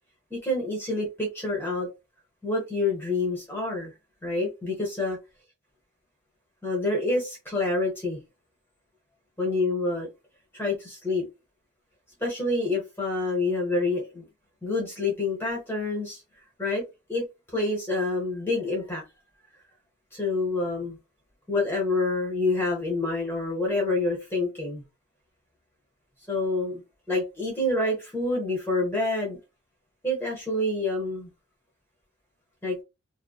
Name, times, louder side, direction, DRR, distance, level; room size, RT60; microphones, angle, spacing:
voice 1, 0.3-1.9 2.4-3.9 4.2-5.2 6.6-8.2 9.4-10.1 10.5-11.2 12.2-14.2 14.6-16.2 16.6-16.8 17.1-17.2 17.5-19.0 20.1-21.0 21.5-24.8 26.3-26.8 27.1-29.4 30.0-31.3 32.6-32.8, left 2 dB, 10° left, -3 dB, 0.8 m, -27 dB
2.5 x 2.0 x 2.3 m, 0.25 s
head